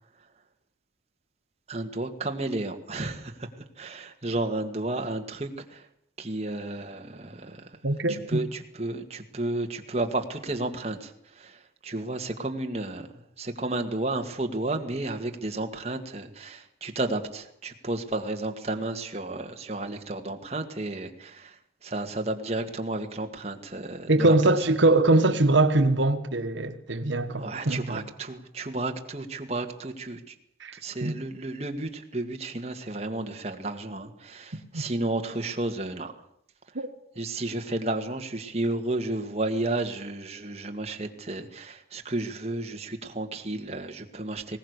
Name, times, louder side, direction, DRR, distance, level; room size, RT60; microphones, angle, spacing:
voice 1, 1.7-3.3 3.8-5.8 6.2-7.7 8.1-11.1 11.4-11.6 11.8-13.1 13.4-21.5 21.8-24.3 27.4-30.2 30.8-36.1 37.2-44.6, right 2 dB, 35° right, 1.9 m, -32 dB
voice 2, 7.8-8.4 24.1-28.0 30.6-31.2 34.7-34.8 36.7-36.9, right 2 dB, 80° right, 1.4 m, -23 dB
20.5 x 18.5 x 8.2 m
head